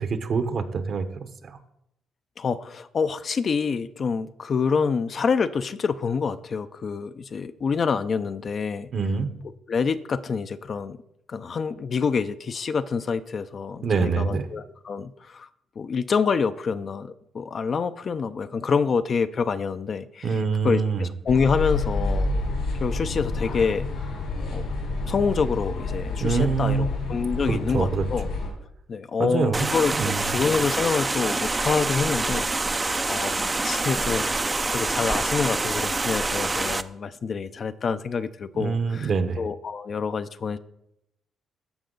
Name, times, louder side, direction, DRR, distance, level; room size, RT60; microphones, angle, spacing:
voice 1, 0.0-1.6 8.9-9.3 13.8-14.5 20.2-21.1 26.2-26.9 27.4-28.0 29.2-29.7 30.0-30.2 38.6-39.4, right 5 dB, 55° right, 8 dB, 1.0 m, -25 dB
voice 2, 2.4-8.9 9.7-11.0 11.3-15.5 15.8-22.3 22.8-23.9 24.5-24.7 25.0-28.3 28.9-40.6, left 5 dB, 45° left, 11 dB, 0.5 m, -27 dB
sound 1, 21.3-28.5, left 3 dB, 85° left, 4.0 m, -29 dB
sound 2, 29.5-36.8, right 3 dB, 20° right, 0.4 m, -26 dB
14.0 x 5.3 x 3.9 m, 0.79 s
cardioid pair, 90°, 0 cm